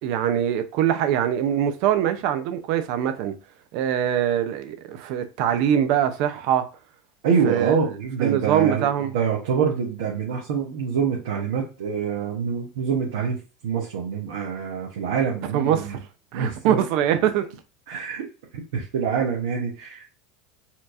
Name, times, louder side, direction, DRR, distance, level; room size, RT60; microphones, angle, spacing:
voice 1, 0.0-3.3 3.7-6.6 7.4-7.8 8.2-9.1 15.4-16.0 16.3-17.5, right 10 dB, 65° right, 0.6 m, -23 dB
voice 2, 7.2-8.9 9.1-16.0 16.3-16.8 17.9-18.2 18.7-20.0, right 6 dB, 80° right, 1.0 m, -25 dB
4.3 x 2.8 x 2.6 m
hypercardioid pair, 100°, 0 cm